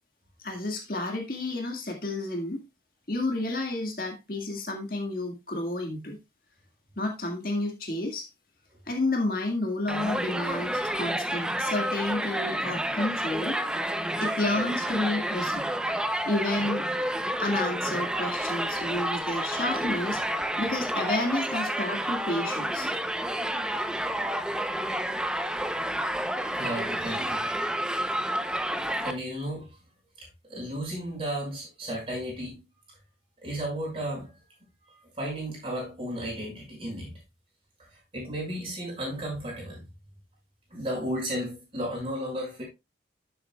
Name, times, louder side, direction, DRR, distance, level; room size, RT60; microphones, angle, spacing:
voice 1, 0.4-2.6 3.1-6.2 7.0-8.3 8.9-13.6 14.2-15.6 16.3-16.8 17.4-20.2 20.6-22.9, left 2 dB, 50° left, 1.8 m, -30 dB
Crowd, 9.9-29.1, right 1 dB, 5° right, 0.6 m, -30 dB
voice 2, 26.5-27.4 29.0-29.7 30.2-32.5 33.4-34.3 34.9-37.2 37.9-39.9 40.7-42.6, equal, 30° right, 6.1 m, -34 dB
12.0 x 7.7 x 2.3 m
head